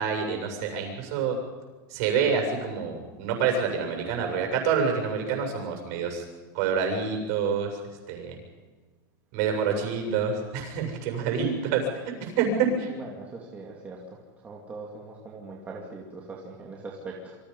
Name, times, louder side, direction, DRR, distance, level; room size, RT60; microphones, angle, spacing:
voice 1, 0.0-1.4 1.9-6.2 6.5-7.7 8.1-8.4 9.3-11.8 12.2-12.9, right 6 dB, 45° right, 3 dB, 7.2 m, -27 dB
voice 2, 12.9-14.0 14.4-17.4, right 3 dB, 15° right, -3 dB, 2.5 m, -41 dB
28.0 x 25.5 x 5.5 m, 1.4 s
supercardioid pair, 180°, 11 cm